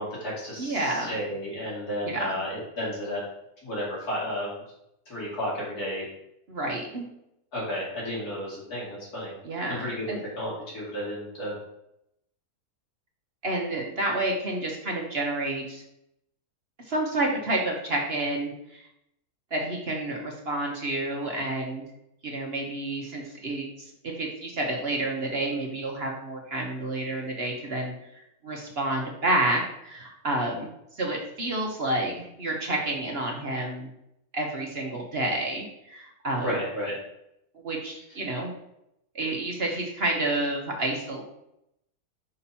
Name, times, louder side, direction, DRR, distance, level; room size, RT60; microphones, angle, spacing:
voice 1, 0.0-3.2 3.6-4.6 5.1-6.1 7.5-9.3 9.7-11.5 36.4-36.9, equal, 75° left, -6 dB, 3.2 m, -32 dB
voice 2, 0.6-1.1 2.0-2.4 6.5-7.1 9.4-10.2 13.4-15.8 16.9-18.8 19.5-21.8 22.2-30.7 31.0-33.9 34.3-36.5 37.6-38.5 39.1-41.2, right 2 dB, 45° right, 0 dB, 1.2 m, -29 dB
5.6 x 5.5 x 4.3 m, 0.82 s
omnidirectional pair, 1.6 m